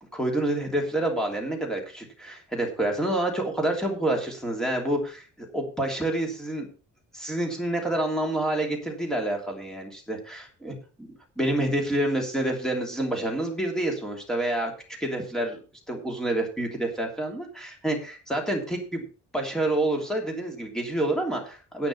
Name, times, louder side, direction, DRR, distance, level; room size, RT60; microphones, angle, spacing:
voice 1, 0.1-6.7 7.1-11.1 11.4-14.7 15.0-15.6 15.9-19.1 19.3-21.9, right 1 dB, ahead, 1 dB, 3.1 m, -28 dB
10.5 x 8.9 x 5.6 m, 0.36 s
cardioid pair, 180°, 30 cm